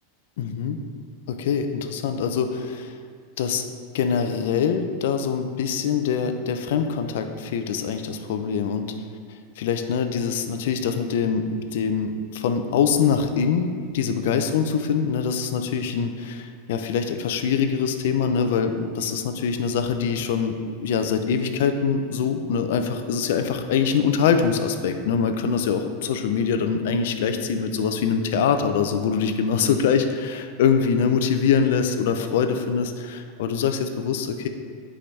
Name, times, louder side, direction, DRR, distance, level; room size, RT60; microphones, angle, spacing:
voice 1, 0.4-0.8 1.3-3.0 3.4-3.6 3.9-8.9 9.6-34.5, left 6 dB, 65° left, 7 dB, 0.5 m, -24 dB
8.5 x 4.9 x 3.3 m, 2.1 s
supercardioid pair, 165°, 0 cm